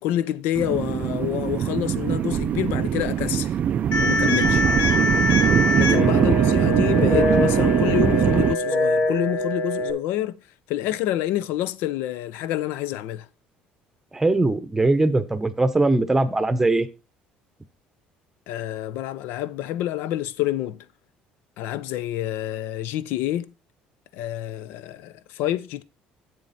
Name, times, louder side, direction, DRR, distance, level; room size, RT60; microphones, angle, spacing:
voice 1, 0.0-3.5 4.0-4.6 5.7-10.4 10.7-13.3 18.5-20.8 21.6-23.5 24.1-25.8, left 13 dB, 80° left, 0.6 m, -27 dB
sound 1, 0.6-8.5, right 9 dB, 40° right, 0.3 m, -21 dB
sound 2, 3.9-9.9, left 2 dB, 65° left, 1.7 m, -24 dB
voice 2, 14.1-16.9, right 2 dB, 10° right, 0.8 m, -21 dB
7.8 x 7.6 x 4.1 m
cardioid pair, 130°, 3 cm